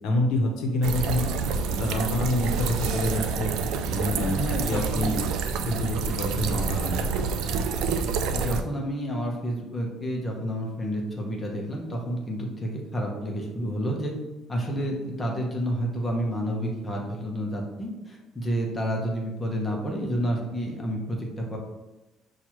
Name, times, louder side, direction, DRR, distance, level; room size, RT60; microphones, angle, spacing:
voice 1, 0.0-1.3 1.7-3.5 3.9-4.4 4.6-5.2 5.6-7.1, left 1 dB, 75° left, 1 dB, 0.8 m, -27 dB
sound 1, 0.8-8.6, right 5 dB, 75° right, 0.3 m, -28 dB
voice 2, 4.3-5.1 8.3-14.1 14.5-21.6, equal, 15° left, 0 dB, 0.8 m, -30 dB
6.0 x 2.4 x 3.0 m, 1.1 s
cardioid pair, 145°, 0 cm